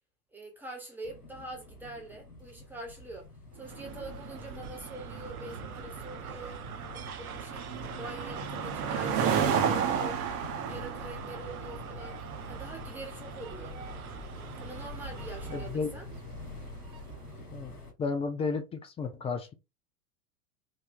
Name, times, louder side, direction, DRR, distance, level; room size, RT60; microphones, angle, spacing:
voice 1, 0.3-6.6 6.9-7.7 7.9-10.3 10.6-12.2 12.5-13.8 14.6-16.1, right 2 dB, 5° right, 1.4 m, -44 dB
sound 1, 1.0-17.9, left 2 dB, 80° left, 1.9 m, -46 dB
sound 2, 3.6-17.1, right 7 dB, 30° right, 1.1 m, -35 dB
sound 3, 3.6-15.7, right 7 dB, 70° right, 0.9 m, -44 dB
voice 2, 15.5-15.9 17.5-19.5, left 4 dB, 15° left, 0.6 m, -33 dB
5.1 x 2.7 x 3.7 m
figure-of-eight pair, 95°, 45 cm